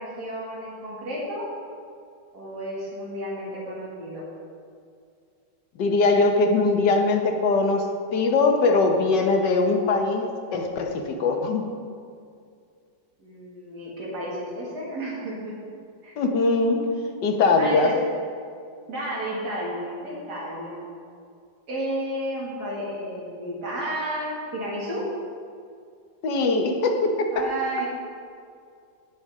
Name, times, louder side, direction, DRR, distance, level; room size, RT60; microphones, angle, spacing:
voice 1, 0.0-1.5 2.3-4.2 13.2-15.5 16.0-16.2 17.6-18.1 18.9-20.8 21.7-25.1 27.3-27.9, right 1 dB, 65° right, -5 dB, 2.7 m, -32 dB
voice 2, 5.8-11.6 16.2-16.9 17.2-18.0 26.2-27.2, left 3 dB, 75° left, 4 dB, 1.7 m, -21 dB
17.0 x 6.2 x 3.6 m, 2.3 s
omnidirectional pair, 1.9 m